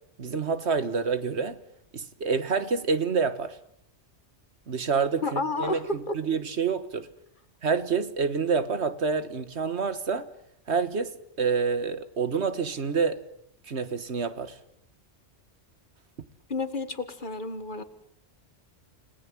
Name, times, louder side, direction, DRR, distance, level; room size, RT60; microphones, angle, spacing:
voice 1, 0.2-1.6 1.9-3.6 4.7-5.8 6.1-7.1 7.6-10.3 10.7-13.2 13.7-14.6, right 5 dB, 70° right, 1.7 m, -27 dB
voice 2, 5.2-6.2 16.5-17.8, left 2 dB, 45° left, 1.9 m, -30 dB
29.0 x 19.5 x 7.6 m
omnidirectional pair, 1.2 m